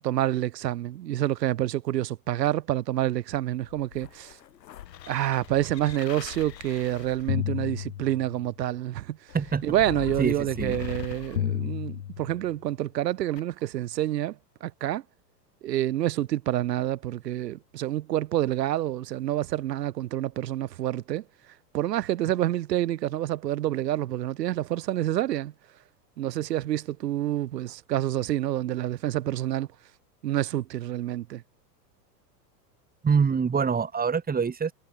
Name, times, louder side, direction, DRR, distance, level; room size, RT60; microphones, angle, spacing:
voice 1, 0.0-4.4 5.1-9.4 9.6-15.0 15.6-21.2 21.7-25.5 26.2-29.7 30.2-31.4, right 13 dB, 70° right, 7.4 m, -28 dB
sound 1, 3.6-8.6 9.3-12.6 13.4-13.5, left 11 dB, 75° left, 7.7 m, -35 dB
voice 2, 10.2-10.8 33.0-34.7, right 6 dB, 15° right, 4.7 m, -25 dB
hypercardioid pair, 105°, 50 cm